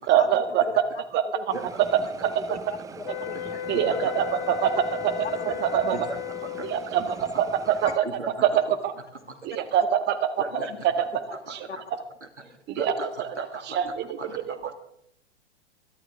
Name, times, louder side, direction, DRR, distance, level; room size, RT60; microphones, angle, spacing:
voice 1, 0.1-0.6 1.1-1.2 3.7-5.1 5.5-6.0 6.6-8.0 8.4-8.5 8.8-8.9 9.4-10.6 11.0-11.1 11.5-11.7 12.7-12.9 13.2-14.7, right 9 dB, 30° right, 10 dB, 1.5 m, -25 dB
sound 1, 1.5-8.0, right 6 dB, 10° right, 0.5 m, -43 dB
voice 2, 2.2-3.4 3.9-4.1 5.4-5.5 7.8-7.9 10.5-10.8 11.7-11.8 12.9-13.0, left 5 dB, 80° left, 10 dB, 1.7 m, -37 dB
sound 2, 3.0-6.9, left 15 dB, 40° left, 0.6 m, -35 dB
voice 3, 3.3-4.1 5.5-5.6 5.9-6.9 8.0-8.3 9.3-9.4 10.4-11.0 11.5-14.7, right 2 dB, 90° right, 8 dB, 2.0 m, -39 dB
22.5 x 12.0 x 3.6 m, 0.72 s
figure-of-eight pair, 105°, 34 cm